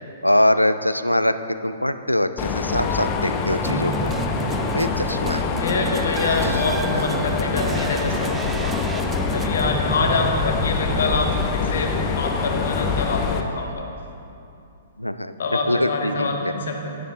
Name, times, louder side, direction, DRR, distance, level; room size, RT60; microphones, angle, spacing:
voice 1, 0.2-4.1 4.7-5.5 6.6-6.8 15.0-15.3 15.7-16.5, left 1 dB, 85° left, 11 dB, 0.4 m, -22 dB
Mechanisms, 2.4-13.4, left 5 dB, 30° left, 0.7 m, -25 dB
sound 1, 3.6-11.9, right 6 dB, 15° right, 0.3 m, -32 dB
voice 2, 5.5-11.9 12.2-13.9 15.4-16.9, left 3 dB, 60° left, 3 dB, 1.3 m, -26 dB
11.5 x 10.0 x 3.6 m, 2.7 s
figure-of-eight pair, 115°, 0 cm